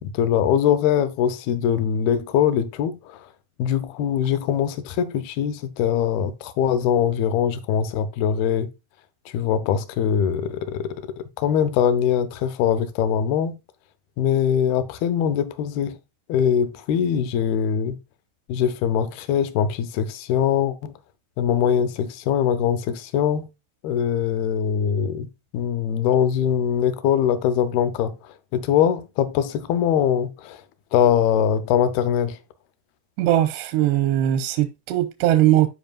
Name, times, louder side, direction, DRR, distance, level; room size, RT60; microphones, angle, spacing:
voice 1, 0.0-3.3 3.6-8.7 9.3-13.6 14.2-16.0 16.3-18.0 18.5-21.0 21.4-23.5 23.8-30.6 30.9-32.4, left 8 dB, 75° left, 2.5 m, -22 dB
voice 2, 33.2-35.7, right 12 dB, 90° right, 2.8 m, -20 dB
13.5 x 4.8 x 2.3 m
omnidirectional pair, 4.8 m